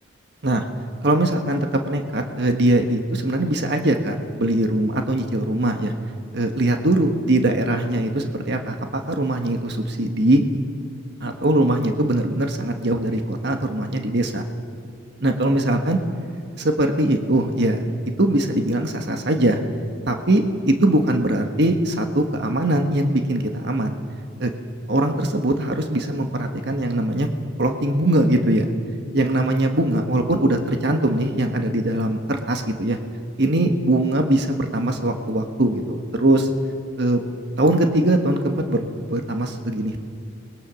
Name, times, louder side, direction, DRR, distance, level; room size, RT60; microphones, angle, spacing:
voice 1, 1.0-5.9 6.3-10.4 11.2-14.4 15.2-16.0 16.6-19.6 20.1-24.0 24.4-24.5 24.9-27.3 27.6-28.6 29.1-33.0 33.4-36.5 37.0-37.2 37.6-40.0, right 1 dB, 55° right, 5 dB, 1.5 m, -21 dB
29.5 x 20.5 x 6.3 m, 2.4 s
head